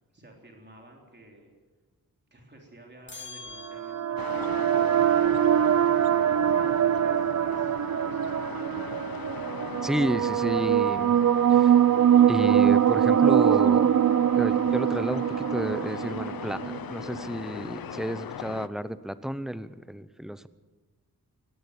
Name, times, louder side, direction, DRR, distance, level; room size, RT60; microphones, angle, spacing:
voice 1, 0.0-1.5 2.3-9.0, right 1 dB, 30° right, 1 dB, 3.6 m, -52 dB
sound 1, 3.1-4.4, left 4 dB, 30° left, 2.0 m, -44 dB
sound 2, 3.6-17.3, right 10 dB, 50° right, 0.5 m, -23 dB
sound 3, 4.2-18.7, left 9 dB, 70° left, 0.7 m, -39 dB
voice 2, 9.8-11.2 11.5-11.8 12.3-14.0 14.4-20.5, equal, ahead, 14 dB, 0.7 m, -31 dB
21.0 x 16.0 x 8.2 m, 1.3 s
wide cardioid pair, 130°, 36 cm